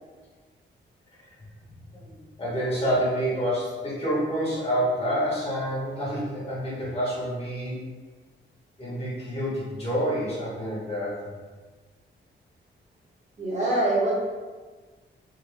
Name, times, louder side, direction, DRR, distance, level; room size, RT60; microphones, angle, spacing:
voice 1, 1.9-7.8 8.8-11.2, equal, 30° left, -7 dB, 1.5 m, -28 dB
voice 2, 13.4-14.1, right 1 dB, 35° right, -7 dB, 1.3 m, -24 dB
3.6 x 2.9 x 3.4 m, 1.4 s
wide cardioid pair, 130°, 20 cm